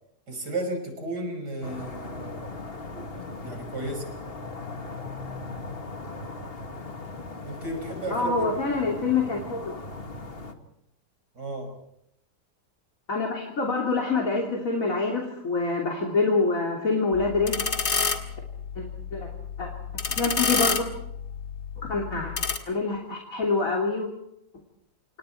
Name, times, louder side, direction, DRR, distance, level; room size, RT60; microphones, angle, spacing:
voice 1, 0.3-2.5 2.9-3.1 3.4-4.1 7.4-8.5 11.3-11.7, right 2 dB, 80° right, 5 dB, 6.3 m, -33 dB
sound 1, 1.6-10.5, left 3 dB, 35° left, 2.0 m, -38 dB
voice 2, 8.1-9.8 13.1-17.6 18.8-18.9 19.1-19.3 19.6-19.7 20.1-20.9 21.9-22.3 22.7-24.1, left 3 dB, 50° left, 0 dB, 3.4 m, -26 dB
sound 2, 17.1-22.6, left 5 dB, 70° left, 2.7 m, -29 dB
29.0 x 27.5 x 4.5 m, 0.76 s
omnidirectional pair, 1.8 m